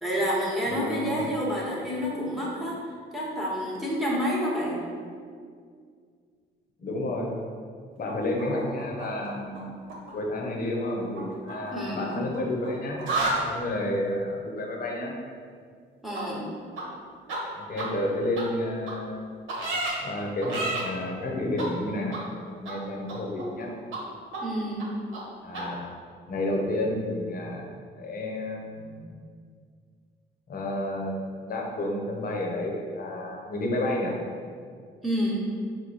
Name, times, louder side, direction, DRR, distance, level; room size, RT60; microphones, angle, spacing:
voice 1, 0.0-4.8 11.7-12.2 16.0-16.5 24.4-24.9 35.0-35.4, equal, ahead, -5 dB, 1.2 m, -29 dB
voice 2, 0.6-1.2 6.8-7.3 8.0-9.7 10.1-13.0 13.3-15.1 17.6-19.3 20.0-22.2 22.5-23.7 25.4-25.9 26.3-27.7 28.0-29.2 30.5-34.1, left 1 dB, 45° left, -1 dB, 0.8 m, -31 dB
sound 1, 8.1-9.6 9.9-10.1 11.2-12.7 13.0-13.4 16.1-16.2 16.8-16.9 17.3-17.4 17.8-17.9 18.4-18.5 18.9-19.0 19.5-19.9 20.4-20.8 21.6-21.7 22.1-22.2 22.7-22.8 23.1-23.7 23.9-24.0 24.3-24.4 24.8-24.9 25.1-25.2 25.5-25.6, right 2 dB, 80° right, 1.0 m, -31 dB
4.6 x 2.2 x 4.0 m, 2.1 s
cardioid pair, 90°, 20 cm